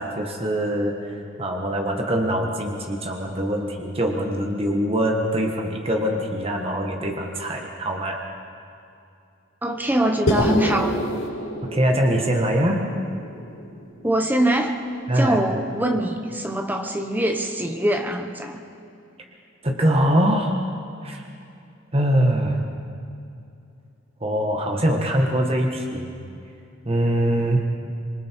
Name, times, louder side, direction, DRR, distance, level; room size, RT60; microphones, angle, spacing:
voice 1, 0.0-8.2 11.6-12.9 15.1-15.4 19.6-20.6 21.0-21.2 21.9-22.6 24.2-26.1 26.8-27.7, right 1 dB, 30° right, 2 dB, 1.5 m, -23 dB
voice 2, 9.6-10.9 14.0-14.8 15.1-18.6, right 1 dB, 10° right, 4 dB, 1.3 m, -23 dB
sound 1, 10.3-14.6, left 1 dB, 90° left, 2.4 m, -28 dB
26.0 x 23.0 x 4.7 m, 2.6 s
head